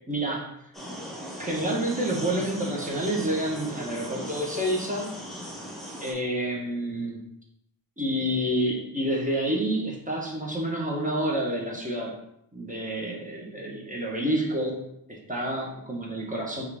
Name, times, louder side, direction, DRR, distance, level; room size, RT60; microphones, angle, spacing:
voice 1, 0.1-0.5 1.4-5.1 6.0-7.2 8.0-12.2 12.5-14.8 15.1-16.6, right 1 dB, 20° right, -3 dB, 1.1 m, -28 dB
sound 1, 0.7-6.1, equal, ahead, 1.2 m, -38 dB
5.6 x 2.6 x 3.5 m, 0.78 s
wide cardioid pair, 85°, 36 cm